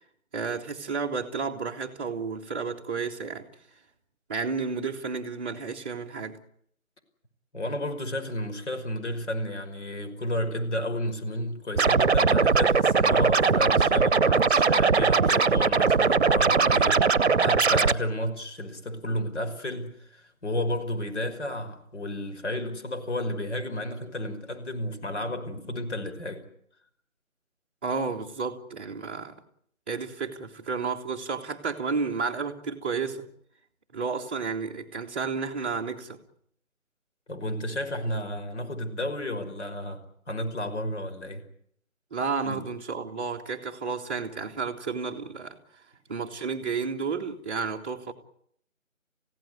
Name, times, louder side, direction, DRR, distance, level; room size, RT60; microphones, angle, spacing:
voice 1, 0.3-3.5 4.3-6.4 27.8-29.3 29.9-33.3 33.9-36.2 42.1-45.8 46.1-48.1, right 5 dB, 10° right, 1.1 m, -31 dB
voice 2, 7.5-26.5 37.3-41.4 42.4-42.7, left 1 dB, 55° left, 5.6 m, -32 dB
Scratching (performance technique), 11.8-17.9, right 5 dB, 50° right, 1.0 m, -21 dB
30.0 x 16.5 x 9.5 m
figure-of-eight pair, 160°, 42 cm